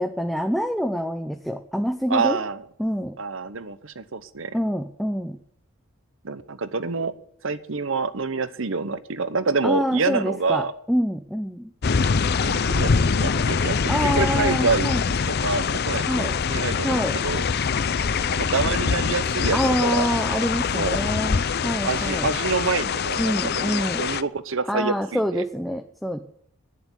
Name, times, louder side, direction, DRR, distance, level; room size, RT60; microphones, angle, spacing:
voice 1, 0.0-2.4 2.8-3.2 4.5-5.4 9.6-11.7 13.9-15.0 16.1-16.3 16.8-17.2 19.5-22.3 23.2-24.0 24.7-26.2, equal, ahead, 5 dB, 0.6 m, -26 dB
voice 2, 2.1-2.6 3.2-4.5 6.2-7.1 7.4-10.7 12.4-15.0 15.4-17.5 18.4-20.1 20.7-21.0 21.8-25.4, right 4 dB, 60° right, 13 dB, 0.9 m, -27 dB
sound 1, 11.8-24.2, left 5 dB, 45° left, 0.5 m, -24 dB
11.0 x 9.6 x 9.7 m, 0.68 s
head